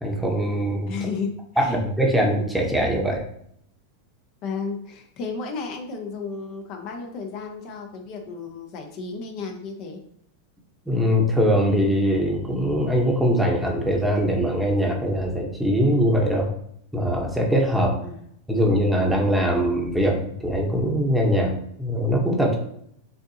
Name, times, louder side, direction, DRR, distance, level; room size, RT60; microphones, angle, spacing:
voice 1, 0.0-0.9 1.6-3.2 10.9-16.5 16.9-18.0 18.5-21.5 21.8-22.6, equal, 5° right, 0 dB, 1.0 m, -22 dB
voice 2, 0.9-1.8 4.4-10.0 18.0-18.2, left 4 dB, 50° left, 3 dB, 0.9 m, -33 dB
6.6 x 2.6 x 2.8 m, 0.70 s
supercardioid pair, 125°, 0 cm